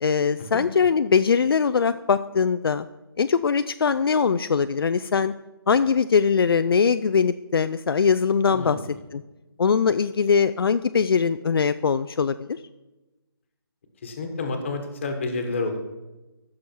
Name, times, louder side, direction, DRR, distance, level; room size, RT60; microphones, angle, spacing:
voice 1, 0.0-2.9 3.2-5.3 5.7-8.8 9.1-9.2 9.6-12.6, left 6 dB, 70° left, 11 dB, 0.4 m, -21 dB
voice 2, 8.5-9.0 14.0-15.8, left 3 dB, 30° left, 6 dB, 1.4 m, -29 dB
15.0 x 6.3 x 4.5 m, 1.1 s
hypercardioid pair, 170°, 13 cm